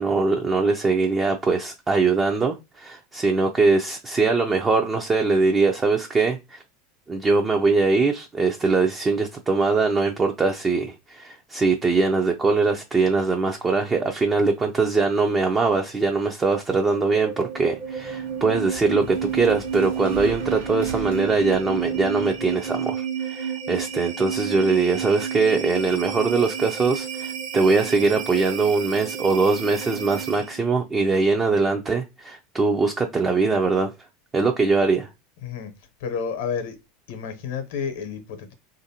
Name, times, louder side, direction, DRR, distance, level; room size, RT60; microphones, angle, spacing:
voice 1, 0.0-6.6 7.1-33.9 34.3-35.1, right 4 dB, 25° right, 0.4 m, -22 dB
sound 1, 16.7-30.7, right 8 dB, 55° right, 1.0 m, -31 dB
sound 2, 17.3-22.8, right 3 dB, 85° right, 0.8 m, -41 dB
voice 2, 36.0-36.8 37.1-38.5, left 6 dB, 75° left, 0.8 m, -30 dB
3.1 x 2.5 x 2.8 m
hypercardioid pair, 105°, 0 cm